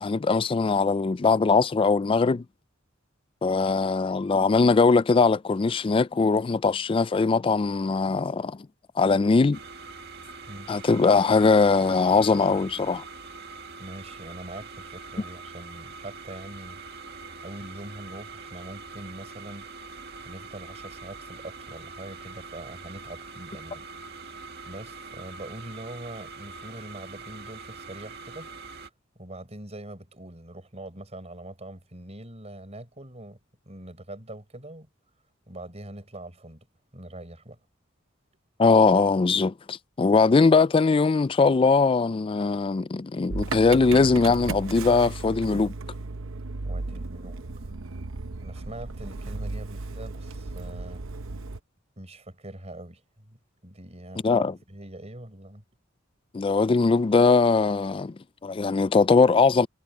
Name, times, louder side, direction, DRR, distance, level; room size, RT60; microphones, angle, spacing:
voice 1, 0.0-2.4 3.4-8.6 9.0-9.6 10.7-13.0 38.6-45.7 54.2-54.5 56.3-59.7, left 4 dB, 25° left, 0.3 m, -21 dB
sound 1, 9.5-28.9, right 4 dB, 55° right, 2.1 m, -43 dB
voice 2, 13.8-16.8 17.4-19.7 20.2-23.8 24.3-28.5 29.1-33.4 33.7-34.9 35.5-36.7 36.9-37.6 46.6-47.8 48.4-51.0 52.0-55.6, right 1 dB, 35° right, 4.7 m, -43 dB
Motor vehicle (road) / Engine starting, 43.3-51.6, right 3 dB, 85° right, 0.8 m, -35 dB
head